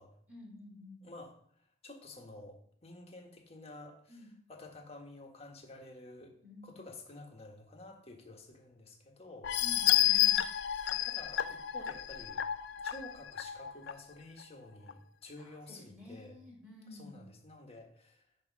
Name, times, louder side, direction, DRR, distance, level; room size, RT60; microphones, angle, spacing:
voice 1, 0.3-1.0 4.1-4.3 6.4-6.8 9.6-10.4 15.9-17.2, left 2 dB, 5° right, -3 dB, 3.5 m, -50 dB
voice 2, 1.0-1.4 1.8-6.4 6.6-10.0 10.9-12.4 12.8-16.4 16.9-18.2, left 2 dB, 35° left, 1 dB, 1.3 m, -51 dB
sound 1, 9.4-13.9 14.4-14.5 14.9-15.0, left 12 dB, 65° left, 0.4 m, -30 dB
8.5 x 3.1 x 6.0 m, 0.63 s
head